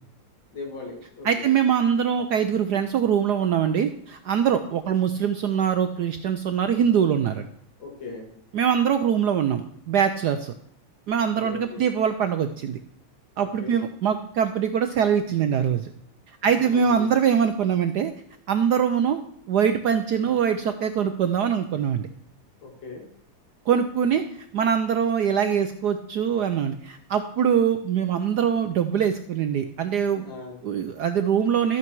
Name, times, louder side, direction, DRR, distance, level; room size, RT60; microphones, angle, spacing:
voice 1, 0.5-1.5 7.8-8.3 11.3-11.8 13.4-13.8 16.4-17.1 22.6-23.1 30.2-30.6, left 3 dB, 60° left, 1 dB, 3.1 m, -38 dB
voice 2, 1.2-7.5 8.5-10.5 11.1-12.8 13.4-15.9 16.4-18.1 18.5-19.2 19.5-22.1 23.7-24.2 24.5-30.2 30.6-31.8, right 8 dB, 70° right, 8 dB, 1.0 m, -23 dB
13.0 x 8.7 x 4.6 m, 0.68 s
omnidirectional pair, 2.3 m